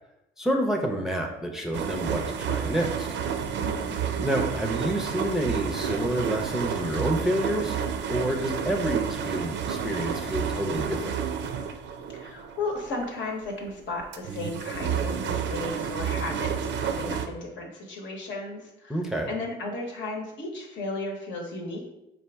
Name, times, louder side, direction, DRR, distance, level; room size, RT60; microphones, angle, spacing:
voice 1, 0.4-3.1 4.2-7.8 8.1-11.2 18.9-19.3, right 1 dB, ahead, 1 dB, 0.5 m, -28 dB
sound 1, 1.7-13.7 14.0-17.3, right 7 dB, 65° right, 0.4 m, -30 dB
voice 2, 3.6-4.0 12.1-21.9, left 2 dB, 70° left, 0 dB, 1.0 m, -35 dB
4.2 x 2.6 x 3.4 m, 0.91 s
cardioid pair, 90°, 20 cm